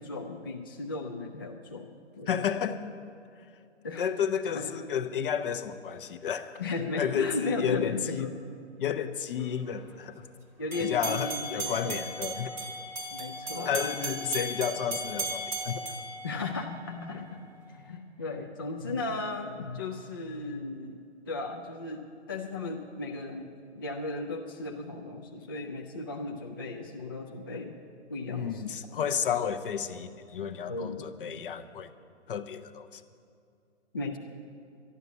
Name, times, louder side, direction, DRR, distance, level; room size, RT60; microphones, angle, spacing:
voice 1, 0.0-1.9 2.2-2.4 3.8-4.0 4.5-4.7 6.6-8.3 10.6-12.0 13.1-13.9 14.3-14.4 14.8-14.9 16.2-17.4 17.7-27.8 28.1-28.6 28.9-29.0 30.7-31.5 33.9-34.2, left 3 dB, 20° left, 1 dB, 0.3 m, -36 dB
voice 2, 2.3-2.8 4.0-6.6 7.0-8.3 8.8-10.1 10.8-12.5 13.6-15.9 28.3-31.9 32.3-33.0, left 8 dB, 45° left, 11 dB, 0.9 m, -31 dB
sound 1, 10.7-16.9, right 2 dB, 5° right, 1.1 m, -36 dB
12.0 x 11.0 x 8.1 m, 2.5 s
hypercardioid pair, 145°, 36 cm